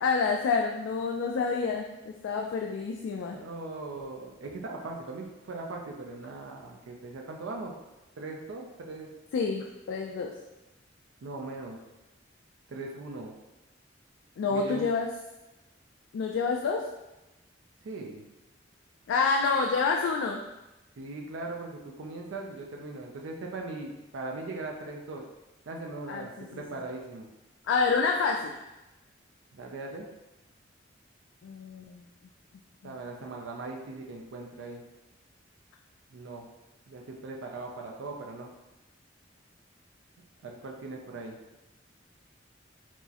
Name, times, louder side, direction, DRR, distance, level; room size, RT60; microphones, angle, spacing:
voice 1, 0.0-3.4 9.3-10.3 14.4-15.1 16.1-16.8 19.1-20.4 26.1-26.6 27.7-28.6 31.4-32.0 32.8-32.9, left 4 dB, 75° left, 1 dB, 0.3 m, -28 dB
voice 2, 3.3-7.7 8.1-9.1 11.2-11.8 12.7-13.4 14.5-14.8 17.8-18.2 21.0-25.2 25.7-27.3 29.5-30.1 32.8-34.8 36.1-36.5 36.9-38.5 40.4-41.4, right 2 dB, 75° right, 1 dB, 0.4 m, -39 dB
4.4 x 2.0 x 2.8 m, 1.0 s
head